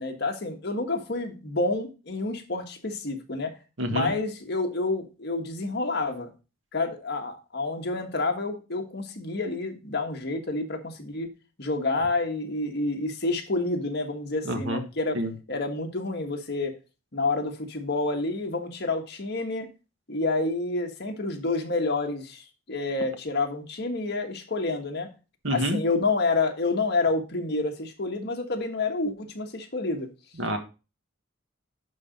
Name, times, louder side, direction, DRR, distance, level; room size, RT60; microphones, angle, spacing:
voice 1, 0.0-3.5 3.9-6.3 6.7-11.3 11.6-15.2 15.5-16.7 17.1-19.7 20.1-25.1 25.5-30.1, left 3 dB, 55° left, 4 dB, 1.5 m, -29 dB
voice 2, 3.8-4.1 14.4-14.8 15.1-15.3 25.4-25.8 30.4-30.6, equal, 65° right, 6 dB, 1.6 m, -27 dB
11.0 x 4.0 x 5.1 m, 0.32 s
head